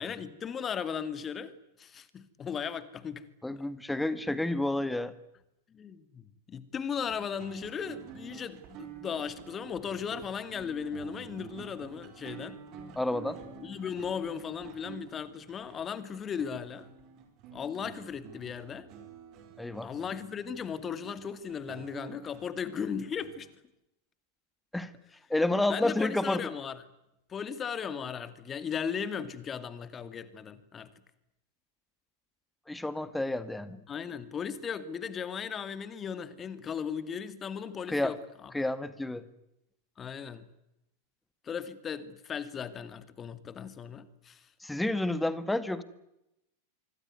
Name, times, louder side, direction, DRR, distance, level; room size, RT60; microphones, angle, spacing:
voice 1, 0.0-3.3 5.7-12.6 13.6-16.9 17.5-18.9 19.8-23.5 25.7-26.8 27.3-30.9 33.9-38.2 38.4-38.5 40.0-40.5 41.4-44.5, left 7 dB, 25° left, 2.2 m, -37 dB
voice 2, 3.4-5.1 13.0-13.4 19.6-19.9 24.7-24.9 25.3-26.4 32.7-33.8 37.9-38.1 38.5-39.2 44.6-45.8, left 2 dB, 5° left, 2.0 m, -30 dB
sound 1, 7.0-23.5, right 8 dB, 40° right, 5.2 m, -49 dB
25.5 x 24.5 x 9.5 m
figure-of-eight pair, 90°, 0 cm